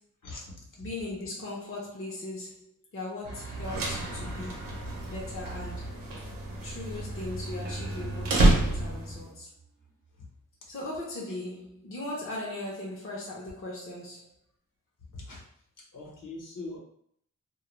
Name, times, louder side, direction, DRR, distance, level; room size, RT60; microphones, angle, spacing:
voice 1, 0.2-0.9 15.0-15.4 15.9-16.8, left 2 dB, 70° left, -4 dB, 0.9 m, -42 dB
voice 2, 0.8-4.8 5.1-6.0 6.6-9.5 10.7-14.3, left 2 dB, 40° left, -4 dB, 0.6 m, -38 dB
sound 1, 3.2-7.1 7.4-7.5, right 2 dB, 50° right, 0.8 m, -43 dB
sound 2, 3.5-9.2, right 1 dB, 90° right, 0.7 m, -29 dB
sound 3, 7.6-10.3, right 5 dB, 30° right, 0.4 m, -47 dB
2.2 x 2.1 x 3.0 m, 0.67 s
wide cardioid pair, 115°, 33 cm